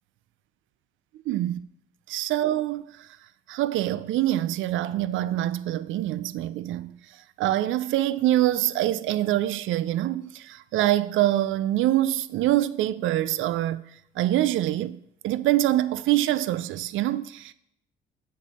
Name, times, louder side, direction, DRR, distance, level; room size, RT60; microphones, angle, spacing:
voice 1, 1.3-1.6 2.1-3.1 3.5-6.9 7.4-13.8 14.2-15.0 15.2-17.5, right 14 dB, 80° right, 0.4 m, -25 dB
6.9 x 6.5 x 4.2 m
cardioid pair, 90°, 20 cm